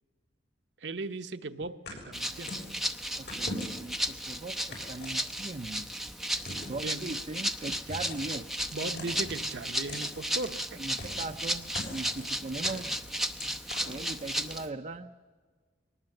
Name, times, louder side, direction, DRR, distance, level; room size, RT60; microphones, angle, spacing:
voice 1, 0.8-2.6 6.7-7.0 8.7-10.6, right 3 dB, 70° right, 8 dB, 1.0 m, -37 dB
sound 1, 1.9-2.7 3.3-4.0 4.7-5.6 6.4-6.8 7.7-8.3 8.9-9.4 9.9-10.1 11.0-11.4 11.7-12.3 12.6-14.5, left 2 dB, 65° left, 6.7 m, -41 dB
Rattle (instrument), 2.1-14.7, equal, ahead, 0.8 m, -34 dB
voice 2, 3.2-5.9 6.7-8.5 10.7-12.9 13.8-15.1, right 2 dB, 40° right, 7 dB, 0.6 m, -39 dB
22.5 x 19.5 x 7.8 m, 1.5 s
head